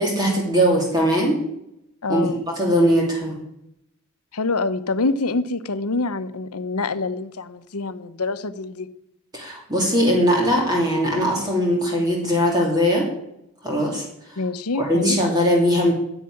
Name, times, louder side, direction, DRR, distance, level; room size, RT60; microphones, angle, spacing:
voice 1, 0.0-1.4 2.1-3.4 9.3-13.1 13.6-14.0 14.7-15.9, equal, 20° right, -1 dB, 2.7 m, -20 dB
voice 2, 2.0-2.4 4.3-8.9 14.4-15.2, left 3 dB, 90° left, 12 dB, 0.9 m, -26 dB
10.5 x 8.3 x 9.8 m, 0.82 s
head